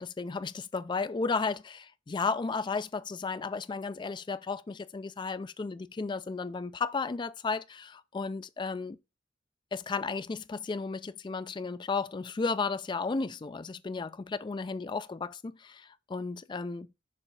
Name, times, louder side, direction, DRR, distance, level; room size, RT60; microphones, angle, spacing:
voice 1, 0.0-9.0 9.7-16.9, left 4 dB, 25° left, 0.3 m, -34 dB
6.7 x 3.6 x 4.7 m
head